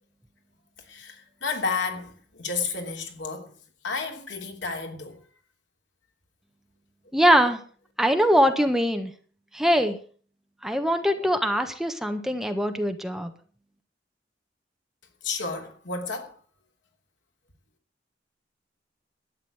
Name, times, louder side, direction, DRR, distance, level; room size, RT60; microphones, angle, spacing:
voice 1, 0.9-3.5 3.8-5.2 15.2-16.4, left 4 dB, 90° left, 3.1 m, -31 dB
voice 2, 7.1-7.6 8.0-9.1 9.5-10.0 10.6-13.3, equal, 5° right, 1.3 m, -22 dB
12.5 x 9.2 x 7.8 m
head